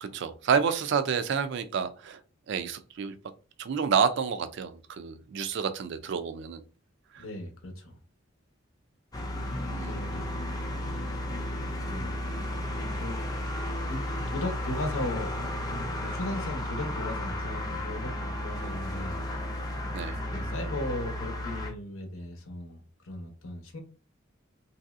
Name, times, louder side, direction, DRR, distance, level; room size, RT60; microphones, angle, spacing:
voice 1, 0.0-2.2 2.5-3.2 3.6-6.6 7.1-7.2 9.7-10.0 19.9-20.2, right 6 dB, 60° right, 0.3 m, -29 dB
voice 2, 7.2-8.0 9.2-9.3 9.9-10.5 11.8-12.1 13.0-13.5 13.9-19.2 20.0-23.8, left 1 dB, 80° left, 0.8 m, -37 dB
sound 1, 9.1-21.7, left 1 dB, 20° left, 0.5 m, -33 dB
3.0 x 2.7 x 2.4 m
head